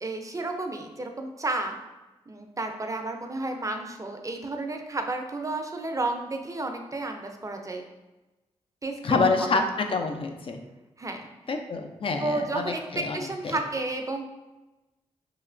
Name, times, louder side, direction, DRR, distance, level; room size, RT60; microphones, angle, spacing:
voice 1, 0.0-1.8 2.3-7.8 8.8-9.5 11.0-11.3 12.2-14.3, right 2 dB, 25° right, 4 dB, 0.5 m, -32 dB
voice 2, 9.0-9.6 9.9-10.6 11.5-13.6, left 4 dB, 45° left, 5 dB, 0.4 m, -27 dB
3.1 x 2.8 x 2.5 m, 1.1 s
supercardioid pair, 45°, 12 cm